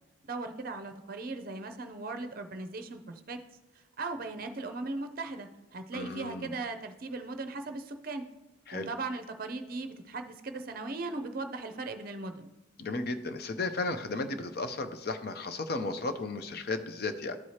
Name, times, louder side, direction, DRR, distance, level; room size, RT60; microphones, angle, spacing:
voice 1, 0.2-3.4 4.0-8.2 8.7-12.5, right 3 dB, 45° right, 7 dB, 0.6 m, -38 dB
voice 2, 5.9-6.6 8.7-8.9 12.8-17.4, left 3 dB, 50° left, 9 dB, 0.5 m, -34 dB
13.0 x 4.7 x 2.8 m, 1.1 s
head